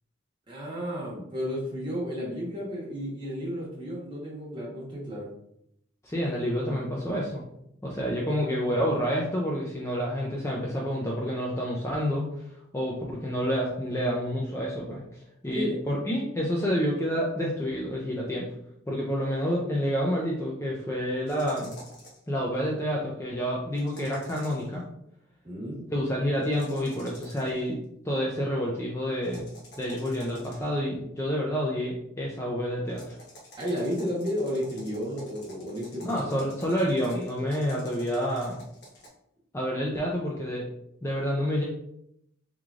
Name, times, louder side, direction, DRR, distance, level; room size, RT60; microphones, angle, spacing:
voice 1, 0.5-5.3 15.5-15.8 25.4-25.8 33.6-36.4, equal, 25° right, -5 dB, 1.1 m, -32 dB
voice 2, 6.0-7.4 7.8-12.3 12.7-15.0 15.4-18.5 18.9-21.7 22.3-24.9 25.9-27.8 28.0-33.1 36.0-38.6 39.5-40.7 41.0-41.6, equal, 15° left, -3 dB, 0.4 m, -28 dB
sound 1, 21.3-22.3 23.7-24.7 26.4-27.7 29.2-30.8 32.9-39.1, equal, 55° left, 1.0 m, -50 dB
3.5 x 3.1 x 2.4 m, 0.76 s
head